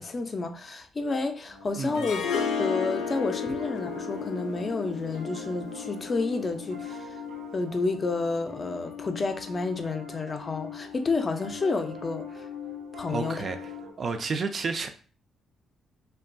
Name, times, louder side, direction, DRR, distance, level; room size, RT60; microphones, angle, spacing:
voice 1, 0.0-2.2 2.6-7.1 7.5-12.4 13.0-13.4, left 3 dB, 35° left, 0.4 m, -30 dB
Piano, 1.4-13.9, left 6 dB, 85° right, 1.0 m, -41 dB
voice 2, 1.8-2.1 13.1-13.6 14.0-14.9, right 4 dB, 45° right, 0.3 m, -31 dB
Harp, 1.9-7.0, left 6 dB, 90° left, 0.4 m, -33 dB
2.9 x 2.2 x 2.5 m
cardioid pair, 90°, 0 cm